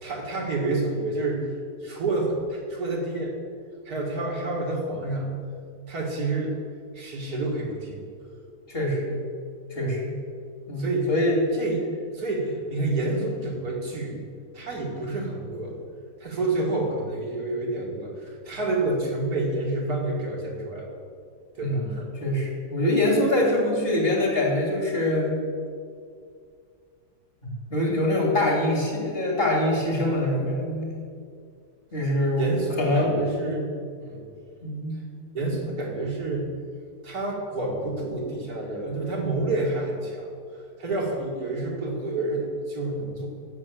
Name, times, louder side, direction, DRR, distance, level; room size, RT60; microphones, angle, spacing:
voice 1, 0.0-1.5 1.8-3.3 3.9-5.4 5.9-6.6 6.9-8.0 10.8-11.1 11.5-11.8 12.1-14.2 14.5-15.8 16.2-20.9 21.5-22.1 32.4-33.7 34.0-34.2 35.3-36.5 37.0-40.3 40.8-43.3, right 2 dB, 65° right, -2 dB, 2.5 m, -28 dB
voice 2, 8.7-9.2 9.7-10.2 10.7-11.4 21.6-25.4 27.7-31.0 31.9-32.5 32.8-33.1 34.6-35.0, left 1 dB, 35° left, -1 dB, 2.8 m, -24 dB
11.0 x 7.9 x 7.6 m, 2.2 s
omnidirectional pair, 1.8 m